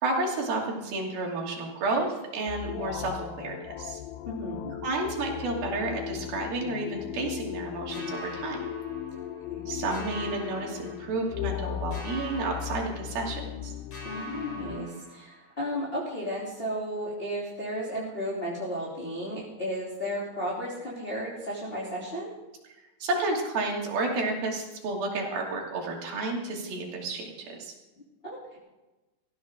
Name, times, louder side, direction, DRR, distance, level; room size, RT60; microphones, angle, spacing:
voice 1, 0.0-4.0 4.8-8.6 9.7-13.7 23.0-27.7, right 2 dB, 70° right, -1 dB, 4.6 m, -31 dB
sound 1, 2.5-14.8, left 11 dB, 80° left, 2.5 m, -37 dB
voice 2, 4.2-4.7 9.5-9.7 14.0-22.3 28.2-28.6, equal, 15° left, -6 dB, 2.9 m, -34 dB
sound 2, 7.9-9.6 9.9-11.6 11.9-13.6 13.9-15.6, right 1 dB, 45° left, 3.2 m, -44 dB
19.0 x 15.0 x 3.8 m, 1.1 s
omnidirectional pair, 4.5 m